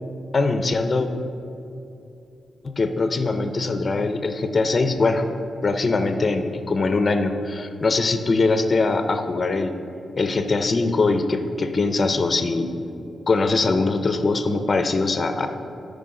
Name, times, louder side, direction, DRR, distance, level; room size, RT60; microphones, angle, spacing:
voice 1, 0.3-1.1 2.6-5.2 5.6-9.7 10.2-12.7 13.3-15.5, left 3 dB, 30° left, 7 dB, 0.5 m, -22 dB
13.0 x 5.0 x 3.7 m, 2.7 s
wide cardioid pair, 165°, 0 cm